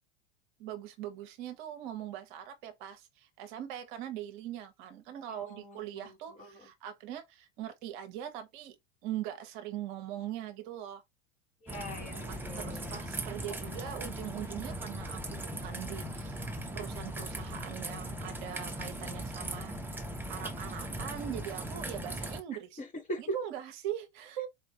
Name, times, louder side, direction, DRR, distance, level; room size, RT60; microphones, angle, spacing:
voice 1, 0.6-8.8 9.0-11.0 12.3-19.8 20.3-22.8 23.2-24.5, right 11 dB, 50° right, 0.8 m, -41 dB
voice 2, 5.3-6.1 6.4-6.6 11.6-12.9 13.6-13.9 22.8-23.2, equal, 25° left, 1.2 m, -43 dB
Raindrop / Trickle dribble, 11.7-22.4, right 1 dB, 5° right, 0.6 m, -39 dB
4.2 x 2.5 x 2.9 m
figure-of-eight pair, 85°, 32 cm